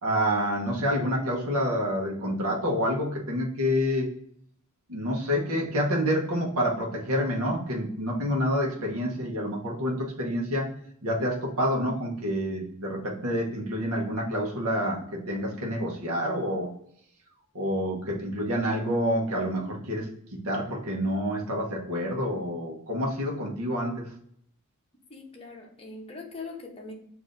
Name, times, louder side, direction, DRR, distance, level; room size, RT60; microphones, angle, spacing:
voice 1, 0.0-4.1 4.9-10.7 11.0-16.7 17.5-20.1 20.4-24.0, equal, 70° right, -2 dB, 0.9 m, -28 dB
voice 2, 25.1-26.9, left 3 dB, 25° left, 1 dB, 0.8 m, -41 dB
7.0 x 2.6 x 2.5 m, 0.67 s
head